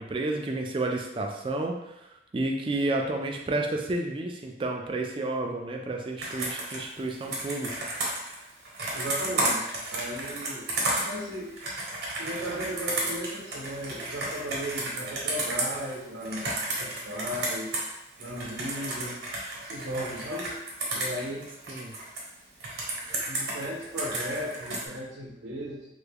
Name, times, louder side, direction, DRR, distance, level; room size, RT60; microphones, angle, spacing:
voice 1, 0.0-7.7 21.7-21.9, right 2 dB, 30° right, 2 dB, 0.3 m, -31 dB
Computer keyboard, 6.2-17.9 18.2-22.2 22.6-24.8, right 2 dB, 60° right, 0.9 m, -32 dB
voice 2, 8.9-10.7 11.1-11.6 12.2-17.7 18.2-19.2 19.6-20.6 20.9-21.5 23.3-25.9, equal, 90° right, -5 dB, 0.7 m, -36 dB
3.4 x 2.2 x 3.4 m, 0.87 s
head